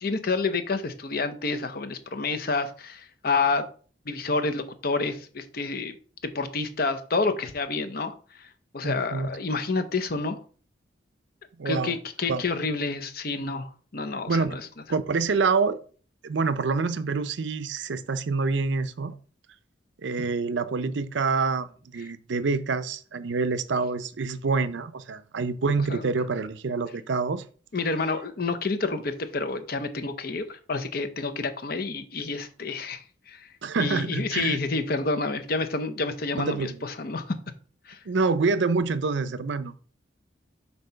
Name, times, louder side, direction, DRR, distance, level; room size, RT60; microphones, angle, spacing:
voice 1, 0.0-3.6 4.1-5.9 6.3-8.1 8.4-8.5 8.7-10.4 11.6-14.6 25.9-26.0 27.7-33.5 33.8-37.4 37.9-38.0, left 3 dB, 50° left, 0.7 m, -29 dB
voice 2, 8.8-9.3 11.6-12.0 12.3-12.4 14.3-14.6 14.9-15.8 16.2-19.1 20.0-27.5 33.6-34.6 36.4-36.8 38.1-39.7, right 4 dB, 70° right, 0.5 m, -26 dB
7.6 x 2.9 x 5.6 m
head